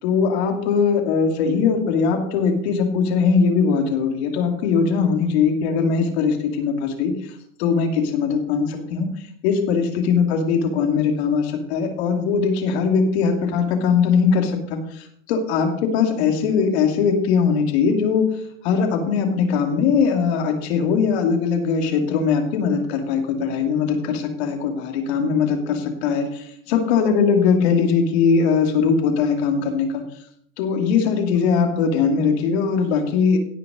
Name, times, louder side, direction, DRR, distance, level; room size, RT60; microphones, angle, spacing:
voice 1, 0.0-18.3 18.6-30.0 30.6-33.4, left 5 dB, 55° left, 4 dB, 2.7 m, -20 dB
17.0 x 5.9 x 5.2 m, 0.66 s
supercardioid pair, 160°, 39 cm